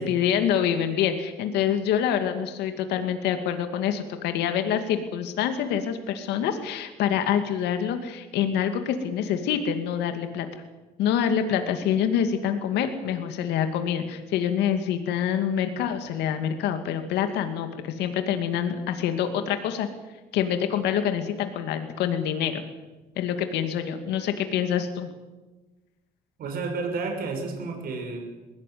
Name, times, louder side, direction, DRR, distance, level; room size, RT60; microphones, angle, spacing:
voice 1, 0.0-10.5 11.0-19.9 20.3-22.6 23.2-25.1, left 9 dB, 85° left, 7 dB, 2.5 m, -26 dB
voice 2, 26.4-28.3, right 3 dB, 60° right, 3 dB, 6.4 m, -31 dB
21.5 x 17.5 x 9.5 m, 1.1 s
cardioid pair, 110°, 17 cm